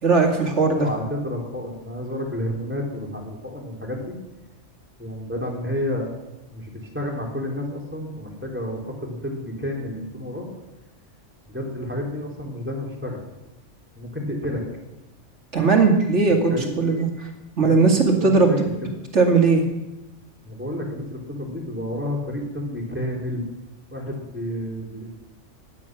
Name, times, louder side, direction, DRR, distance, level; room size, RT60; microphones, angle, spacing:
voice 1, 0.0-0.9 15.5-16.5 16.8-17.3 17.6-18.5 19.1-19.6, right 4 dB, 65° right, 2 dB, 2.6 m, -18 dB
voice 2, 0.6-4.1 5.0-6.1 6.5-10.5 11.5-13.2 13.9-14.6 16.5-16.7 17.6-17.9 18.2-18.6 20.4-23.4 23.9-25.1, left 1 dB, 10° right, 0 dB, 3.3 m, -30 dB
17.0 x 11.0 x 6.1 m, 1.0 s
omnidirectional pair, 1.3 m